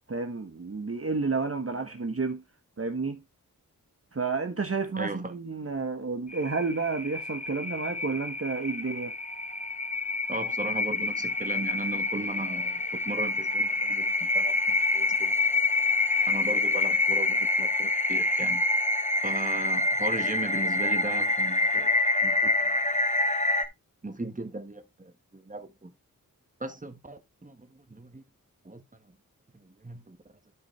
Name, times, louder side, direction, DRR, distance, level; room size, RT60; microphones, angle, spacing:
voice 1, 0.1-2.4 2.8-3.2 4.1-9.1, right 4 dB, 40° right, 1.2 m, -31 dB
voice 2, 5.0-5.3 10.3-15.3 16.3-18.6 19.2-21.9 22.2-22.8 24.0-25.9 26.6-28.2 28.6-28.8 29.5-30.2, right 2 dB, 20° right, 1.5 m, -37 dB
sound 1, 6.3-23.7, left 2 dB, 20° left, 1.1 m, -27 dB
12.5 x 5.3 x 3.2 m
wide cardioid pair, 65°, 35 cm